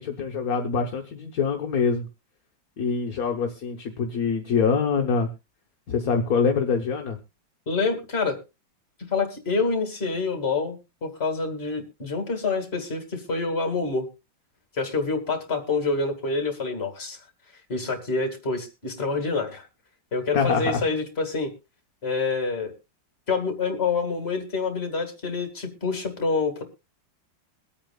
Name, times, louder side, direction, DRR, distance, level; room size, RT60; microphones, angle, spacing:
voice 1, 0.0-2.1 2.8-5.3 5.9-7.2 20.3-20.8, left 5 dB, 50° left, 3 dB, 1.5 m, -24 dB
voice 2, 7.7-8.4 9.1-14.1 14.8-17.2 17.7-19.7 20.1-21.5 22.0-22.7 23.3-26.6, left 4 dB, 30° left, 5 dB, 2.3 m, -27 dB
23.0 x 8.7 x 2.3 m, 0.26 s
omnidirectional pair, 2.1 m